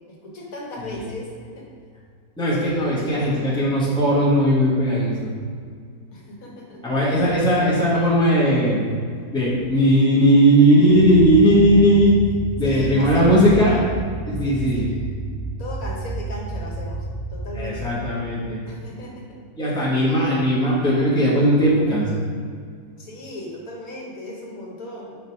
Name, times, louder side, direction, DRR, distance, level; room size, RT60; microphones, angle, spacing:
voice 1, 0.1-1.7 2.5-3.5 6.1-6.8 12.6-13.8 14.4-14.9 15.6-17.1 17.3-17.9 18.7-19.2 23.0-25.2, left 1 dB, 65° left, -2 dB, 1.7 m, -36 dB
voice 2, 2.4-5.4 6.8-8.9 9.3-12.2 12.6-13.8 14.3-14.9 17.5-18.6 19.6-22.2, equal, 5° left, -7 dB, 1.4 m, -18 dB
sound 1, 10.9-18.9, right 2 dB, 70° right, 1.2 m, -31 dB
5.3 x 4.8 x 4.7 m, 2.1 s
omnidirectional pair, 1.6 m